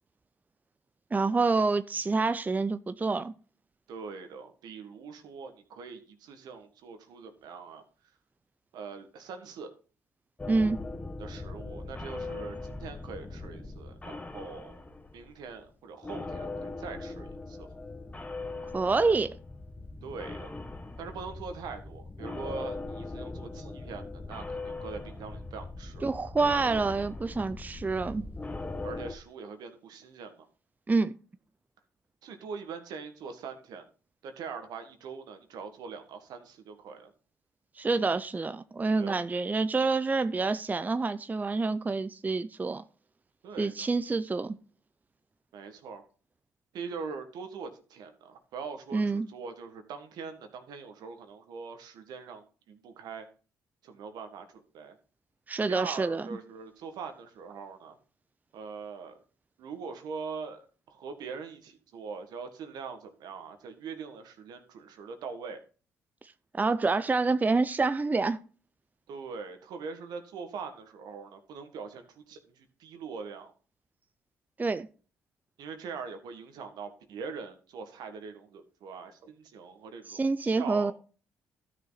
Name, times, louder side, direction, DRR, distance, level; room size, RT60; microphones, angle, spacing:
voice 1, 1.1-3.3 10.5-10.8 18.7-19.3 26.0-28.3 30.9-31.2 37.8-42.8 43.6-44.5 48.9-49.3 55.5-56.3 66.5-68.4 74.6-74.9 80.1-80.9, right 3 dB, 25° right, 0.6 m, -27 dB
voice 2, 3.9-7.8 8.7-9.7 11.2-14.8 15.1-17.7 20.0-20.6 21.0-26.1 28.8-30.5 32.2-33.8 34.2-37.1 39.0-39.2 43.4-43.7 45.5-46.0 46.7-53.3 53.8-55.0 55.7-58.0 58.5-59.2 59.6-65.6 69.1-73.5 75.6-80.9, right 5 dB, 70° right, 1.7 m, -42 dB
sound 1, 10.4-15.7 16.0-29.2, left 2 dB, 20° left, 1.3 m, -40 dB
13.0 x 6.4 x 4.1 m
supercardioid pair, 60°, 7 cm